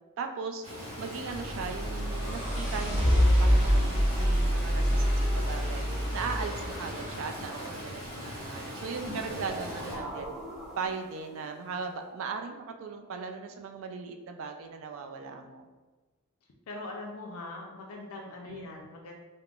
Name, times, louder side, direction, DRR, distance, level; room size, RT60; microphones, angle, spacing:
voice 1, 0.2-0.7 1.0-5.8 6.1-10.3 10.8-15.7 18.5-18.8, right 5 dB, 60° right, 5 dB, 0.3 m, -38 dB
Stream, 0.6-10.0, equal, 80° right, 0.9 m, -40 dB
sound 1, 1.3-7.4, equal, 30° right, 1.4 m, -26 dB
sound 2, 9.0-11.4, right 1 dB, ahead, 0.6 m, -40 dB
voice 2, 16.7-19.1, left 2 dB, 70° left, 0 dB, 0.4 m, -41 dB
3.5 x 2.0 x 2.3 m, 1.3 s
head